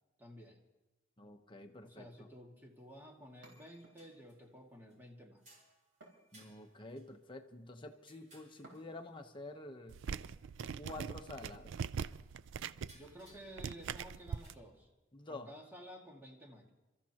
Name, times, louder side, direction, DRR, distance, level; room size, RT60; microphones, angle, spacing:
voice 1, 0.2-0.6 1.8-5.4 12.9-14.9 15.3-16.7, equal, 10° right, 0 dB, 2.1 m, -53 dB
voice 2, 1.2-2.1 6.3-10.0 10.7-11.8 15.1-15.5, left 2 dB, 25° left, 4 dB, 1.0 m, -49 dB
sound 1, 2.9-3.0 3.5-5.0 5.4-9.2 10.0-10.1 10.4-10.6 11.3-11.7 12.7-14.6, right 1 dB, 40° right, 4.8 m, -65 dB
sound 2, 3.4-4.4 6.0-7.0 8.6-9.3 10.9-11.5, right 2 dB, 85° right, 4.0 m, -61 dB
sound 3, 9.9-14.5, right 6 dB, 65° right, 0.4 m, -42 dB
28.5 x 14.0 x 3.0 m, 1.1 s
head